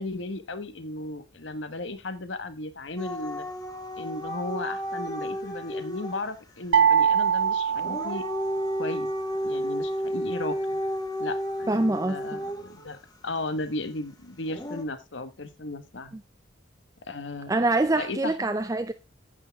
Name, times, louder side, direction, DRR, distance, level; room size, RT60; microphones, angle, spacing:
voice 1, 0.0-3.5 4.0-8.2 8.8-9.1 9.4-10.8 11.2-13.0 13.2-16.2 17.0-17.7 18.0-18.5, left 2 dB, 75° left, 1.3 m, -35 dB
Dog / Siren, 3.0-6.3 7.7-12.9 14.5-14.8, equal, 20° left, 1.4 m, -32 dB
sound 1, 6.7-8.9, right 7 dB, 75° right, 0.5 m, -23 dB
voice 2, 11.7-12.4 17.5-18.9, right 2 dB, 15° right, 0.5 m, -25 dB
9.2 x 8.3 x 3.5 m
head